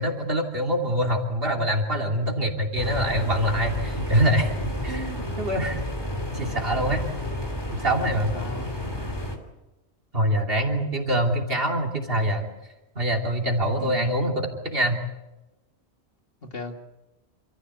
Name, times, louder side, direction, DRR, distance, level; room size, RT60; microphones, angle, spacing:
voice 1, 0.0-5.8 6.3-7.0 7.8-8.3 10.1-12.5 12.9-15.0, equal, 60° right, 2 dB, 3.2 m, -24 dB
sound 1, 2.8-9.4, left 1 dB, 20° left, 2.8 m, -31 dB
voice 2, 8.0-8.8 10.6-11.1 13.8-14.2 16.4-16.7, left 3 dB, 60° left, 4 dB, 2.4 m, -37 dB
28.0 x 14.5 x 8.2 m, 1.0 s
omnidirectional pair, 1.1 m